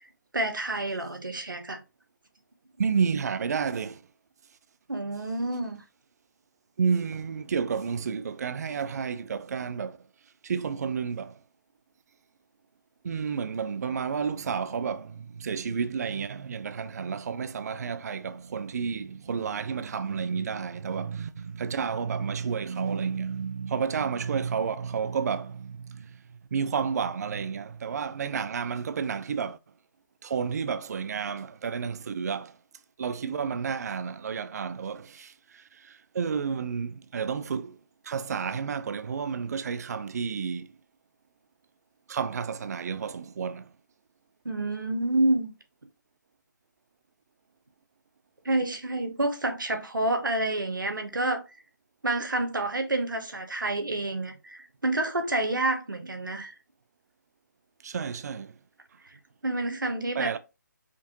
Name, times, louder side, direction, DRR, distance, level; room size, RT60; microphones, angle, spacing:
voice 1, 0.3-1.8 4.9-5.8 44.4-45.5 48.4-51.4 52.0-56.6 59.0-59.2 59.4-60.4, right 2 dB, 90° right, 1.0 m, -28 dB
voice 2, 2.8-4.0 6.8-10.0 10.4-11.4 13.0-26.2 26.5-29.6 30.2-32.6 33.0-37.8 38.0-40.7 42.1-43.7 57.8-58.5 60.1-60.4, right 6 dB, 55° right, 0.4 m, -31 dB
5.1 x 2.6 x 2.6 m
figure-of-eight pair, 150°, 10 cm